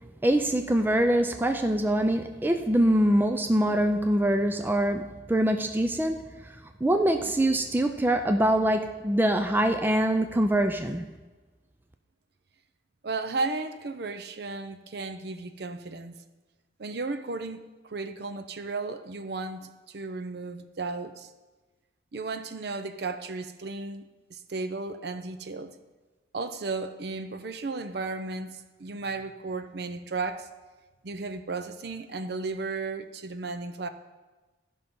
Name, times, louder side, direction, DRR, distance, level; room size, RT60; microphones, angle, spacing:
voice 1, 0.2-6.3 6.8-11.1, right 1 dB, 10° right, 6 dB, 0.4 m, -24 dB
voice 2, 13.0-16.2 16.8-21.3 22.1-25.8 26.3-30.5 31.0-33.9, right 3 dB, 55° right, 10 dB, 0.6 m, -34 dB
14.0 x 5.4 x 5.4 m, 1.2 s
head